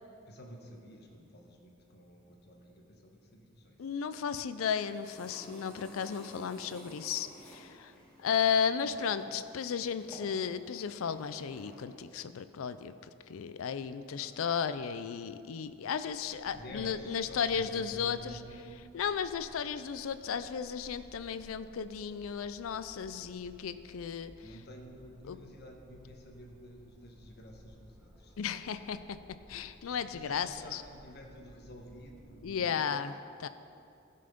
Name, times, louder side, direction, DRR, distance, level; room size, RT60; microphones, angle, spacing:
voice 1, 0.3-3.8 14.2-14.4 16.4-18.7 24.4-28.8 29.9-32.9, equal, 50° left, 1 dB, 1.2 m, -50 dB
voice 2, 3.8-7.9 8.2-12.9 13.3-18.4 18.9-24.3 25.3-25.4 28.4-29.0 29.5-30.8 32.4-33.1 33.4-33.5, left 7 dB, 75° left, 12 dB, 0.4 m, -34 dB
sound 1, 4.7-11.8, equal, 5° left, 2.1 m, -53 dB
sound 2, 15.8-32.7, equal, 10° right, 1.3 m, -58 dB
13.5 x 5.7 x 5.2 m, 2.6 s
head